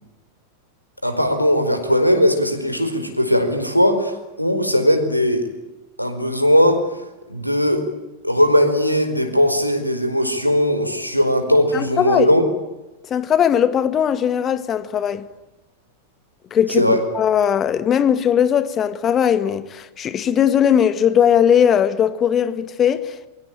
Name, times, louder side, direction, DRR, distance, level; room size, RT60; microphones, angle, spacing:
voice 1, 1.0-5.5 6.0-7.0 7.3-7.8 8.2-12.4 16.7-17.0, equal, 90° left, 4.8 m, -18 dB
voice 2, 11.7-12.3 13.1-15.3 16.5-23.3, left 9 dB, 25° left, 2.0 m, -19 dB
27.5 x 24.0 x 9.0 m
figure-of-eight pair, 90°, 0 cm